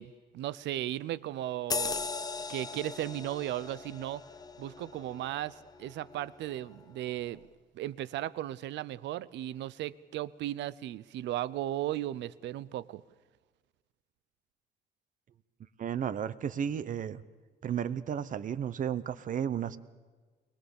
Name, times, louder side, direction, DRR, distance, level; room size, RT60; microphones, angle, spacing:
voice 1, 0.0-2.1 2.5-4.2 4.6-7.4 7.7-13.0, right 13 dB, 80° right, 18 dB, 0.7 m, -36 dB
sound 1, 1.7-6.7 7.1-7.3, left 4 dB, 20° left, 0.7 m, -39 dB
voice 2, 15.8-17.2 17.6-19.8, right 8 dB, 45° right, 14 dB, 0.9 m, -33 dB
22.5 x 20.0 x 7.2 m, 1.4 s
cardioid pair, 135°, 18 cm